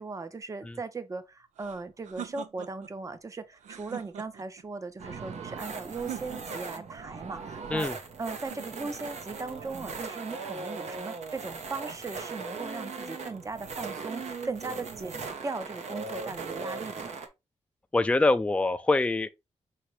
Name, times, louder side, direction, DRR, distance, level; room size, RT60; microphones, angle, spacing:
voice 1, 0.0-7.9 8.2-17.1, right 3 dB, 25° right, 0.6 m, -38 dB
sound 1, 1.6-2.9 3.6-4.6 5.9-6.8 8.3-9.2, right 9 dB, 90° right, 0.4 m, -43 dB
sound 2, 5.0-17.3, right 4 dB, 70° right, 0.9 m, -39 dB
voice 2, 17.9-19.3, left 2 dB, 10° left, 0.4 m, -24 dB
5.8 x 2.9 x 3.1 m
cardioid pair, 80°, 12 cm